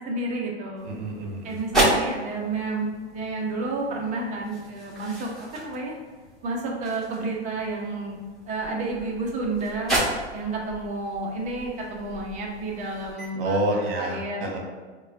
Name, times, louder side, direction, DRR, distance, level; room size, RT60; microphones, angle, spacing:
voice 1, 0.1-0.9 1.4-6.0 6.4-8.2 8.5-10.0 10.3-14.5, right 2 dB, 20° right, -1 dB, 0.6 m, -30 dB
sound 1, 0.8-13.3, right 1 dB, ahead, 1.5 m, -32 dB
voice 2, 0.8-1.6 13.3-14.6, right 1 dB, 55° right, 1 dB, 1.1 m, -28 dB
4.7 x 2.2 x 2.6 m, 1.4 s
hypercardioid pair, 125°, 34 cm